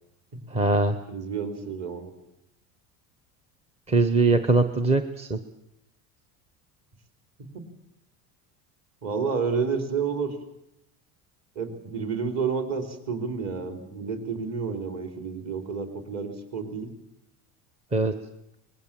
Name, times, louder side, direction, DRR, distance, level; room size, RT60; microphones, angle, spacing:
voice 1, 0.5-1.0 3.9-5.4 17.9-18.1, right 3 dB, 15° right, 9 dB, 0.8 m, -22 dB
voice 2, 1.1-2.1 7.5-7.6 9.0-10.4 11.6-16.9, right 5 dB, 40° right, 6 dB, 3.8 m, -30 dB
24.0 x 20.5 x 7.5 m, 0.83 s
cardioid pair, 160°, 42 cm